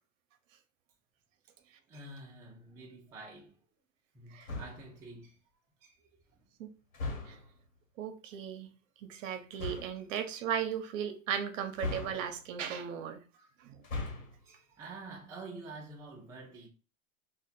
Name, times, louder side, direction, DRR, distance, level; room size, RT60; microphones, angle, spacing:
voice 1, 1.9-3.6 4.1-5.4 5.8-6.5 7.4-7.5 9.2-9.3 13.3-13.6 14.4-16.7, right 3 dB, 10° right, 0.3 m, -49 dB
sound 1, 4.4-5.0 6.9-7.6 9.5-10.0 11.8-12.6 13.7-14.4, left 2 dB, 80° left, 1.3 m, -39 dB
voice 2, 8.0-8.7 9.0-13.2 13.6-13.8, right 8 dB, 65° right, 0.7 m, -36 dB
2.8 x 2.2 x 3.9 m
supercardioid pair, 135°, 41 cm